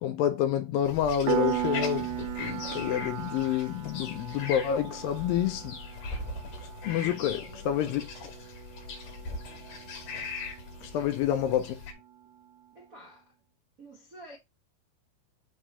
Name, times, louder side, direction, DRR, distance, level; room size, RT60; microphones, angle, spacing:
voice 1, 0.0-5.8 6.6-8.0 10.8-11.8, left 10 dB, 80° left, 2.2 m, -28 dB
sound 1, 0.8-11.9, left 4 dB, 60° left, 3.0 m, -40 dB
Piano, 1.3-11.7, right 12 dB, 85° right, 2.6 m, -37 dB
voice 2, 7.0-8.0 10.8-11.2 12.7-13.3 13.8-14.4, equal, 70° right, 0.8 m, -49 dB
6.0 x 3.2 x 5.3 m
omnidirectional pair, 4.5 m